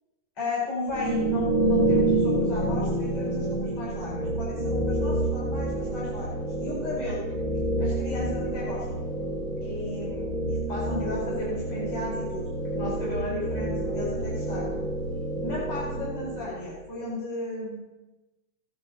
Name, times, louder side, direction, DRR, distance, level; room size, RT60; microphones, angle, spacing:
voice 1, 0.4-6.3 6.6-7.2 7.8-9.0 9.6-12.5 12.7-14.7 15.4-17.8, left 2 dB, 50° left, -7 dB, 5.6 m, -34 dB
sound 1, 0.9-16.7, right 1 dB, 15° left, 2.4 m, -28 dB
16.0 x 12.0 x 2.9 m, 1.1 s
omnidirectional pair, 3.4 m